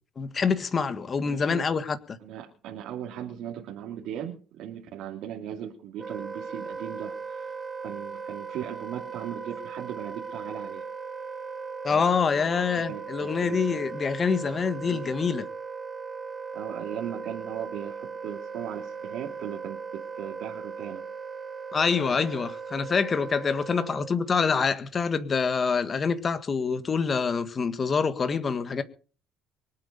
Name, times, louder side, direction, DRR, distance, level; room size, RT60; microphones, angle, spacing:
voice 1, 0.2-2.0 11.8-15.5 21.7-28.8, left 5 dB, 30° left, 1.7 m, -26 dB
voice 2, 1.2-1.7 2.2-10.8 11.9-12.0 12.3-13.8 14.9-15.1 16.5-21.1 23.7-23.8, right 10 dB, 75° right, 2.8 m, -38 dB
Wind instrument woodwind instrument, 6.0-24.2, right 5 dB, 15° right, 1.9 m, -38 dB
24.0 x 8.6 x 5.3 m
cardioid pair, 130°, 0 cm